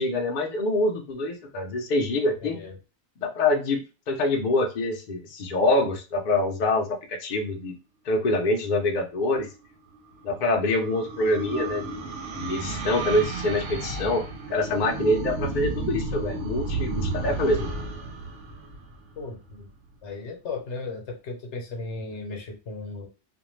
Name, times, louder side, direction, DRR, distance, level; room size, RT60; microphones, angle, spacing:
voice 1, 0.0-2.6 3.2-6.9 7.2-7.7 8.1-9.5 10.2-12.0 12.3-14.2 14.5-17.7, left 2 dB, 50° left, 2 dB, 0.6 m, -25 dB
voice 2, 2.4-2.7 19.2-19.7 20.0-23.1, left 3 dB, 75° left, 2 dB, 1.0 m, -36 dB
sound 1, 9.9-19.5, right 3 dB, 80° right, 1.0 m, -33 dB
2.5 x 2.2 x 3.1 m, 0.31 s
omnidirectional pair, 1.2 m